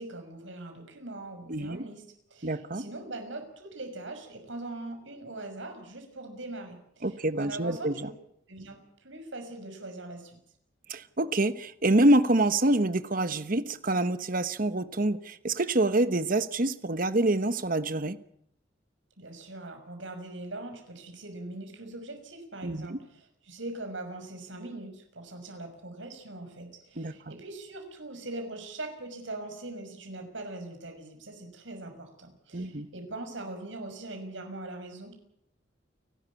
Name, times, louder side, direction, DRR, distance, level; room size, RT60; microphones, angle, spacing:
voice 1, 0.0-2.0 2.3-8.1 8.5-10.4 19.2-35.1, right 2 dB, 80° right, 6.1 m, -41 dB
voice 2, 2.4-2.8 7.0-8.1 10.9-18.2 22.6-23.0 27.0-27.1 32.5-32.9, right 1 dB, 50° right, 1.2 m, -26 dB
29.5 x 12.5 x 8.5 m
head